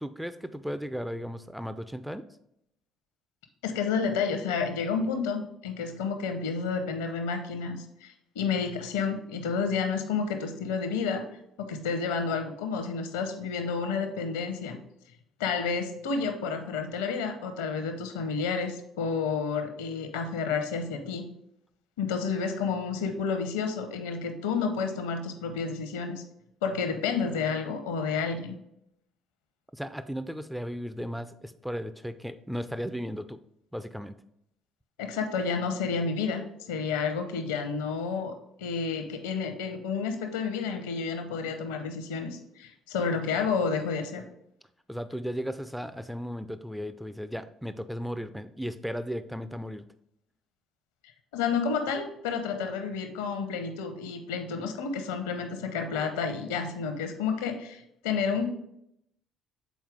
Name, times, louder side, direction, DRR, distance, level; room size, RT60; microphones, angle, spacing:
voice 1, 0.0-2.3 29.7-33.4 33.7-34.1 44.9-49.8, equal, ahead, 12 dB, 0.4 m, -35 dB
voice 2, 3.6-11.3 11.6-14.8 15.4-21.3 22.0-26.2 26.6-28.6 35.0-36.4 36.7-44.2 51.3-58.5, left 5 dB, 65° left, 7 dB, 0.7 m, -30 dB
7.3 x 4.4 x 3.5 m, 0.77 s
figure-of-eight pair, 50°, 0 cm